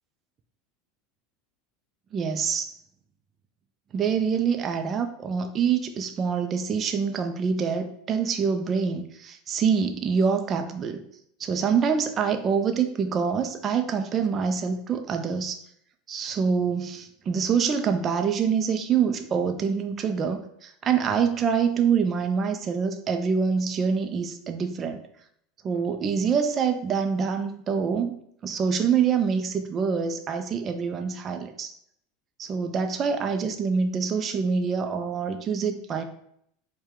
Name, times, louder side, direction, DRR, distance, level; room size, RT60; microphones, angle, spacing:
voice 1, 2.1-2.7 3.9-11.0 11.4-15.6 16.1-25.0 25.6-31.7 32.4-36.0, right 6 dB, 35° right, 6 dB, 0.4 m, -25 dB
4.5 x 2.2 x 3.6 m, 0.70 s
supercardioid pair, 110°, 0 cm